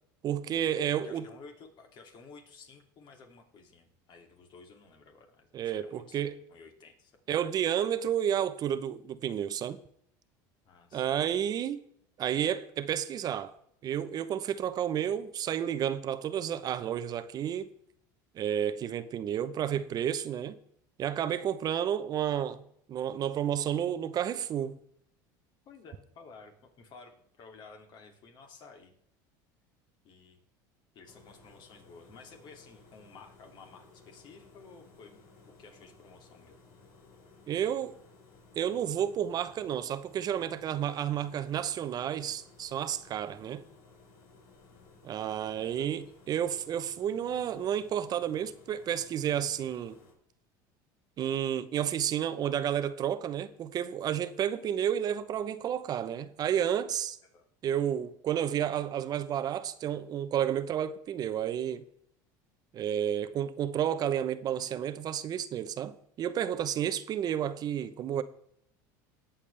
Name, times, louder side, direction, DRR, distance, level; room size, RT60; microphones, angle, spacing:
voice 1, 0.2-1.3 5.5-6.4 7.3-9.8 10.9-11.8 12.2-13.5 13.8-17.7 18.3-20.6 21.0-22.6 22.9-24.8 37.5-37.9 38.6-43.7 45.0-50.0 51.2-57.2 57.6-61.8 62.7-68.2, right 9 dB, 40° right, 0.8 m, -31 dB
voice 2, 1.0-7.1 10.6-11.0 20.3-20.4 25.7-28.9 30.0-30.4 30.9-36.6 44.7-44.8 45.6-45.9 57.3-57.4, left 4 dB, 50° left, 2.7 m, -53 dB
sound 1, 31.0-50.1, left 3 dB, 80° left, 5.1 m, -58 dB
19.0 x 7.2 x 3.4 m
supercardioid pair, 115°, 10 cm